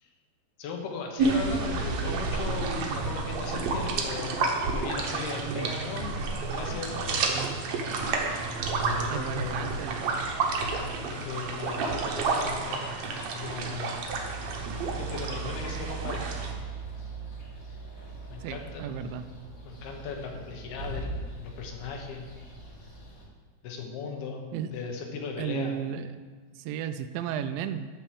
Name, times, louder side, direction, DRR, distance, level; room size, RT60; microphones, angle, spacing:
voice 1, 0.6-4.4 4.7-6.2 6.5-7.3 8.7-9.7 11.0-13.1 13.3-14.0 14.6-16.2 16.7-16.9 18.3-19.1 19.6-22.3 23.6-25.8, left 5 dB, 85° left, 2 dB, 3.2 m, -38 dB
sound 1, 1.2-16.5, right 3 dB, 70° right, 1.7 m, -30 dB
voice 2, 5.4-5.7 7.3-7.6 9.1-10.1 14.9-15.0 18.4-19.3 24.5-24.7 25.4-26.1 26.6-27.9, right 9 dB, 90° right, 9 dB, 1.9 m, -34 dB
sound 2, 14.0-23.2, right 4 dB, 45° left, 1.1 m, -40 dB
12.0 x 4.5 x 7.1 m, 1.5 s
omnidirectional pair, 4.5 m